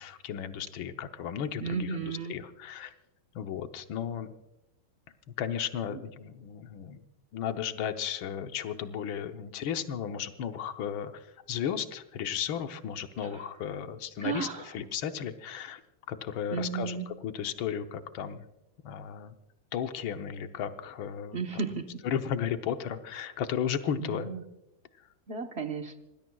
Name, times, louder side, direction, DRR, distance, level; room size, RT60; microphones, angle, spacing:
voice 1, 0.0-2.9 3.3-4.3 5.4-7.0 7.3-15.8 16.1-18.4 18.8-19.4 19.7-21.4 22.0-24.3, left 8 dB, 80° left, 8 dB, 1.7 m, -34 dB
voice 2, 1.6-2.3 5.9-6.0 14.2-14.7 16.5-17.1 21.3-21.9 24.0-24.4 25.3-26.0, right 5 dB, 40° right, 5 dB, 1.1 m, -34 dB
26.0 x 19.5 x 2.3 m, 0.95 s
omnidirectional pair, 2.2 m